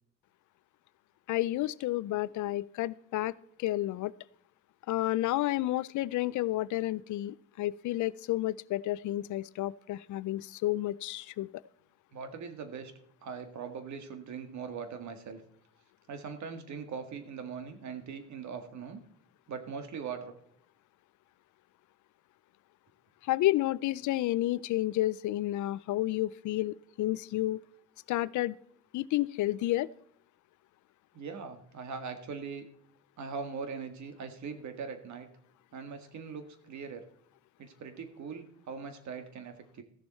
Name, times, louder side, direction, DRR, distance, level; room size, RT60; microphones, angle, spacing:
voice 1, 1.3-4.1 4.9-11.5 23.2-27.6 28.1-28.6 28.9-29.9, left 16 dB, 75° left, 19 dB, 0.5 m, -31 dB
voice 2, 12.1-12.9 13.2-15.4 16.1-19.0 19.5-20.3 31.1-32.6 33.2-35.3 35.7-37.0 37.6-39.8, right 6 dB, 70° right, 8 dB, 1.8 m, -41 dB
15.0 x 7.0 x 4.3 m, 0.68 s
cardioid pair, 90°, 30 cm